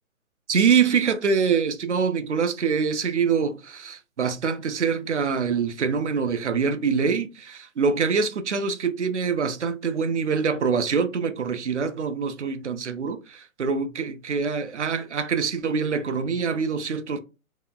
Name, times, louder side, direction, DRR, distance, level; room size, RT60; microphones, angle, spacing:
voice 1, 0.5-17.2, right 6 dB, 55° right, 0.5 m, -24 dB
2.8 x 2.7 x 2.3 m
hypercardioid pair, 180°, 42 cm